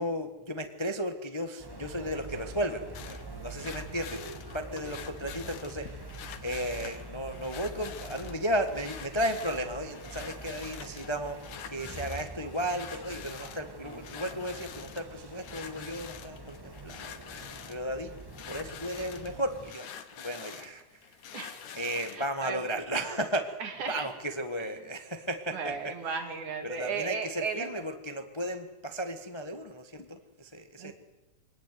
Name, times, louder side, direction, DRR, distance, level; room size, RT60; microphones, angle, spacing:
voice 1, 0.0-6.0 6.4-11.4 11.7-18.1 18.5-21.1 21.7-23.6 23.9-26.0 26.6-30.9, equal, 40° left, 7 dB, 0.4 m, -34 dB
sound 1, 1.6-19.7, right 2 dB, 25° right, 0.5 m, -45 dB
sound 2, 2.9-22.3, left 8 dB, 65° left, 2.6 m, -46 dB
voice 2, 21.3-21.7 22.1-22.7 23.6-24.1 25.5-27.7 30.8-30.9, right 5 dB, 70° right, 5 dB, 4.1 m, -35 dB
24.0 x 19.0 x 9.5 m, 1.0 s
omnidirectional pair, 3.6 m